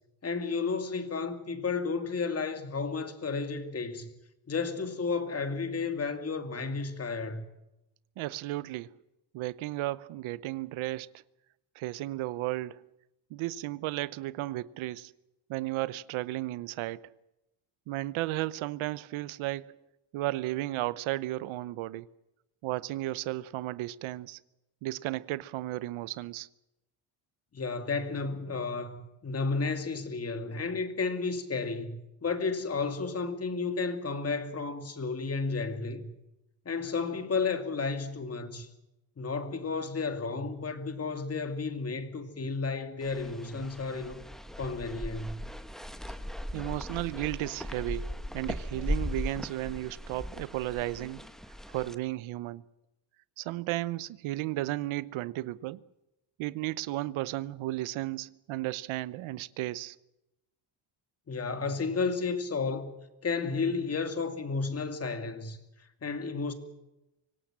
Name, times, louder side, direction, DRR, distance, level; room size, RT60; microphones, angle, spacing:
voice 1, 0.2-4.1 4.5-7.4 27.5-36.1 36.7-38.7 39.2-44.2 44.6-45.5 61.3-63.0 63.2-65.6 66.0-66.5, left 4 dB, 30° left, 2.6 m, -32 dB
voice 2, 8.2-8.9 9.3-11.1 11.8-12.8 13.3-15.1 15.5-17.1 17.9-19.8 20.1-22.1 22.6-24.4 24.8-26.5 46.5-51.3 51.7-52.6 53.4-55.8 56.4-60.0, right 17 dB, 85° right, 0.9 m, -34 dB
sound 1, 43.0-51.9, equal, ahead, 1.2 m, -38 dB
25.0 x 17.5 x 7.5 m
cardioid pair, 125°, 47 cm